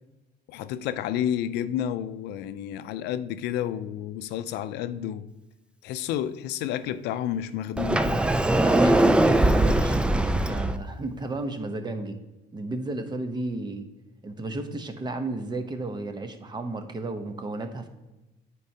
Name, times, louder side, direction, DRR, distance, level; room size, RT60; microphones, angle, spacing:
voice 1, 0.5-5.3 5.8-8.2, left 10 dB, 85° left, 0.5 m, -30 dB
Sliding door, 7.8-10.8, right 1 dB, 5° right, 0.3 m, -21 dB
voice 2, 8.6-12.2 12.5-13.9 14.2-17.9, right 2 dB, 25° right, 0.8 m, -33 dB
9.6 x 4.6 x 2.8 m
cardioid pair, 110°, 17 cm